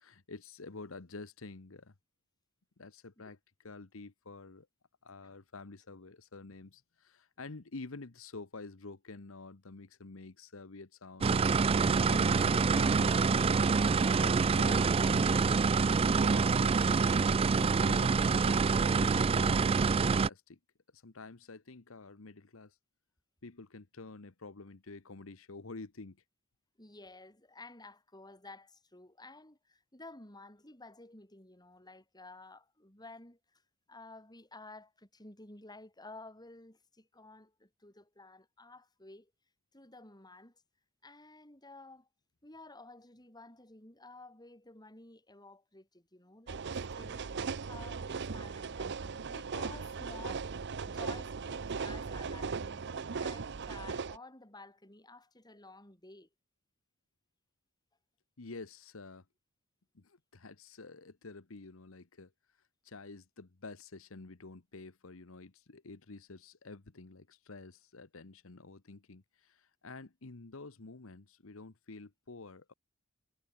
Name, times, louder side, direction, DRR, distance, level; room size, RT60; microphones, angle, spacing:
voice 1, 0.0-1.9 2.8-3.4 3.6-4.7 5.0-11.3 11.9-13.6 14.2-15.5 16.1-16.7 17.5-20.6 20.9-22.8 23.4-26.2 58.4-59.2 59.9-62.3 62.8-72.7, left 3 dB, 70° left, 1.2 m, -49 dB
sound 1, 11.2-20.3, right 5 dB, 25° right, 0.3 m, -26 dB
voice 2, 26.8-33.6 33.9-39.3 39.7-40.6 41.0-42.1 42.4-46.6 47.0-47.3 47.7-50.5 50.9-56.3, left 2 dB, 20° left, 7.3 m, -52 dB
sound 2, 46.5-54.2, right 5 dB, 55° right, 0.7 m, -38 dB
head